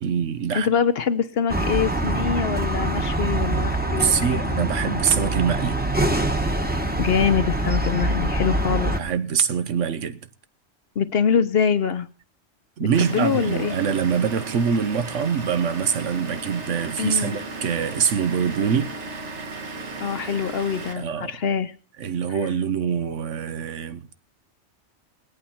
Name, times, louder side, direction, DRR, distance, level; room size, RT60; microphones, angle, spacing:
voice 1, 0.0-0.7 4.0-5.8 9.0-10.2 12.8-18.9 20.9-21.4 22.0-24.1, right 7 dB, 90° right, 1.2 m, -24 dB
voice 2, 0.5-4.4 7.0-8.9 11.0-12.1 13.0-13.8 17.0-17.4 20.0-21.7, left 7 dB, 60° left, 1.0 m, -24 dB
sound 1, 1.5-9.0, right 1 dB, 10° right, 1.0 m, -24 dB
Vehicle / Engine, 12.9-20.9, right 3 dB, 70° right, 1.9 m, -35 dB
20.5 x 8.6 x 4.3 m
omnidirectional pair, 1.2 m